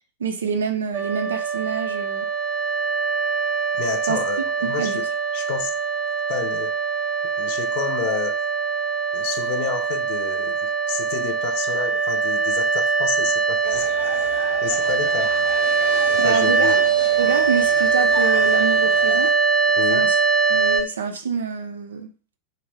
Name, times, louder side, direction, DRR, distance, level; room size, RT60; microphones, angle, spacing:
voice 1, 0.2-2.3 4.1-4.2 4.6-5.0 16.2-16.9 17.2-19.3 19.9-20.2 20.5-22.1, right 6 dB, 65° right, 0.4 m, -26 dB
sound 1, 0.9-20.8, right 5 dB, 25° right, 0.6 m, -22 dB
voice 2, 3.8-5.1 5.3-5.7 6.3-6.7 7.2-8.4 9.1-15.3 16.1-16.8 19.7-20.1, left 9 dB, 45° left, 0.4 m, -30 dB
sound 2, 13.6-19.3, equal, 85° left, 1.0 m, -34 dB
2.5 x 2.1 x 3.2 m
figure-of-eight pair, 90°, 0 cm